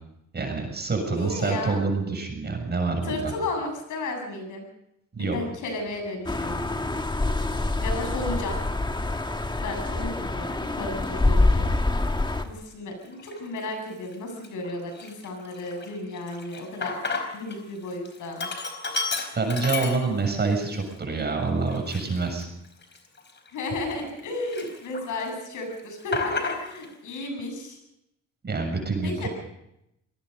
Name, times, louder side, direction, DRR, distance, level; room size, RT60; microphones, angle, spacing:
voice 1, 0.3-3.2 5.1-5.4 19.4-22.5 28.4-29.3, right 3 dB, 35° right, 4 dB, 7.0 m, -26 dB
voice 2, 1.0-1.8 3.0-4.6 5.2-6.6 7.8-8.6 9.6-11.7 12.4-18.5 23.5-27.8 29.0-29.3, left 2 dB, 80° left, 4 dB, 7.5 m, -33 dB
sound 1, 6.3-12.4, left 2 dB, 15° left, 1.8 m, -25 dB
Sink (filling or washing), 12.3-12.5 13.1-13.7 14.1-14.2 14.4-17.6 17.9-20.4 20.9-21.0 21.7-24.2 24.5-25.3 25.6-26.9, left 4 dB, 35° left, 4.5 m, -33 dB
25.0 x 19.5 x 5.4 m, 0.81 s
cardioid pair, 90°, 30 cm